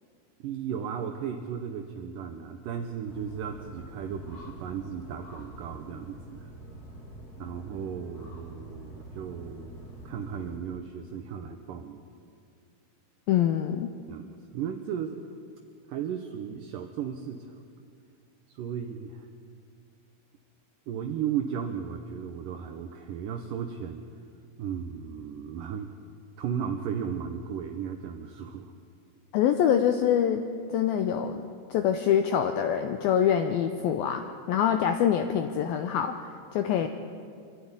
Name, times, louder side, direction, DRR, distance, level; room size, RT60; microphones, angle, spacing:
voice 1, 0.4-6.5 7.4-9.7 10.1-12.0 14.1-14.3 14.5-15.2 15.9-17.6 18.5-19.3 20.9-24.0 24.6-25.9 26.4-28.7, right 8 dB, 70° right, 4 dB, 2.1 m, -35 dB
sound 1, 3.1-10.6, right 1 dB, 35° left, 1.7 m, -45 dB
voice 2, 13.3-13.9 29.3-30.4 30.7-31.4 31.7-36.9, left 9 dB, 80° left, 6 dB, 2.3 m, -25 dB
24.5 x 12.5 x 9.8 m, 2.3 s
omnidirectional pair, 4.9 m